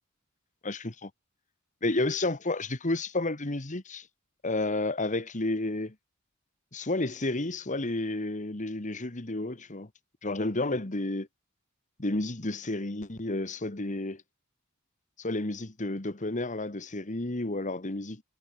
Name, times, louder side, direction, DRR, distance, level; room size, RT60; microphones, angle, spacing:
voice 1, 0.6-1.1 1.8-4.1 4.4-5.9 6.7-9.9 10.2-11.3 12.0-14.2 15.2-18.2, left 2 dB, 35° left, 1.6 m, -31 dB
head